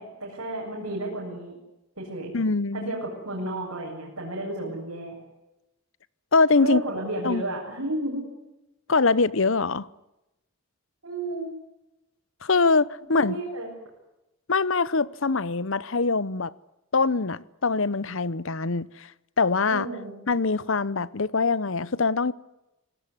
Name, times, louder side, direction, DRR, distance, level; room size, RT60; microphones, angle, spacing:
voice 1, 0.0-1.6 2.0-2.3 2.7-5.1 6.6-8.3 11.0-11.5 13.1-13.7 19.7-20.1, right 1 dB, 70° right, 7.8 m, -32 dB
voice 2, 2.3-2.9 6.3-6.8 7.2-7.4 8.9-9.9 12.4-13.4 14.5-16.5 16.9-19.1 19.4-19.9 20.3-22.3, left 4 dB, 60° left, 0.8 m, -23 dB
26.5 x 18.0 x 9.9 m
head